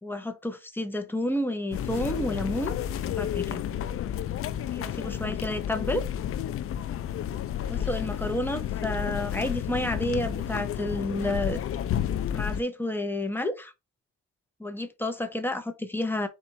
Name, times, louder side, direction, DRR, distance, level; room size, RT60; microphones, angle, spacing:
voice 1, 0.0-2.8 3.2-3.6 4.7-6.1 7.7-11.6 12.3-13.7 14.6-16.3, left 1 dB, 5° left, 0.8 m, -30 dB
sound 1, 1.7-12.6, left 10 dB, 50° left, 0.4 m, -31 dB
4.3 x 2.5 x 4.1 m
cardioid pair, 90°, 30 cm